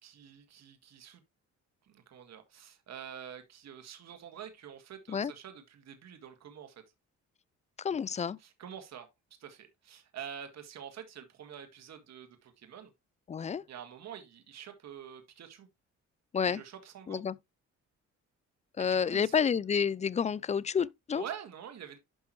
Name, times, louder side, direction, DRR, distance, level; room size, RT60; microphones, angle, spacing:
voice 1, 0.0-1.2 1.8-6.8 8.4-9.1 9.4-12.9 13.7-15.7 16.5-17.2 18.8-19.4 21.1-22.0, right 8 dB, 60° right, 1.8 m, -47 dB
voice 2, 7.8-8.4 13.3-13.6 16.3-16.6 17.1-17.3 18.8-21.2, left 7 dB, 25° left, 0.4 m, -29 dB
11.0 x 5.8 x 3.0 m
cardioid pair, 90°, 30 cm